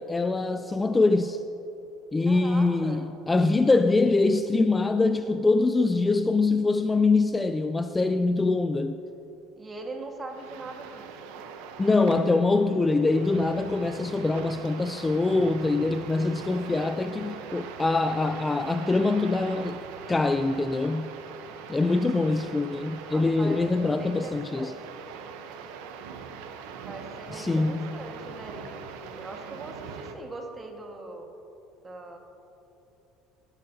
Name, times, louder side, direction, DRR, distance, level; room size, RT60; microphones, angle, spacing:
voice 1, 0.0-1.4 2.1-9.0 11.8-19.8 20.1-21.1 21.7-24.7 27.3-28.0, left 3 dB, 15° left, 9 dB, 0.3 m, -24 dB
voice 2, 2.3-3.0 9.6-11.1 16.5-16.7 23.1-24.8 26.8-31.3 31.8-32.2, right 2 dB, 25° right, 2 dB, 1.6 m, -41 dB
sound 1, 10.3-30.1, right 6 dB, 80° right, 0.8 m, -41 dB
16.5 x 11.0 x 2.8 m, 3.0 s
supercardioid pair, 105°, 0 cm